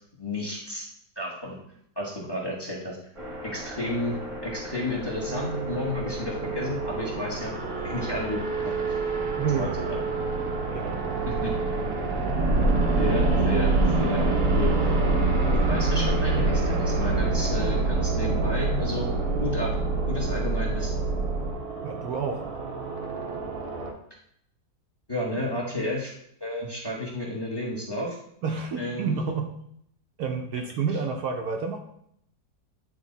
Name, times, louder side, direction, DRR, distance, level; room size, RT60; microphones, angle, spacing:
voice 1, 0.2-0.9 1.1-1.6 1.9-3.0 3.4-7.5 7.8-9.0 9.6-10.0 11.2-11.5 13.0-13.7 14.0-14.9 15.7-19.1 19.4-19.7 20.1-21.0 25.1-26.1 26.4-28.2 28.8-29.1, left 1 dB, 15° left, -3 dB, 1.3 m, -32 dB
sound 1, 3.2-21.5, right 2 dB, 20° right, 1.0 m, -27 dB
sound 2, 5.3-23.9, right 4 dB, 45° right, 0.8 m, -32 dB
voice 2, 9.4-9.7 10.7-11.0 21.8-22.5 28.4-29.5 30.2-31.8, right 5 dB, 65° right, 3 dB, 1.1 m, -29 dB
9.3 x 3.3 x 3.9 m, 0.70 s
omnidirectional pair, 1.9 m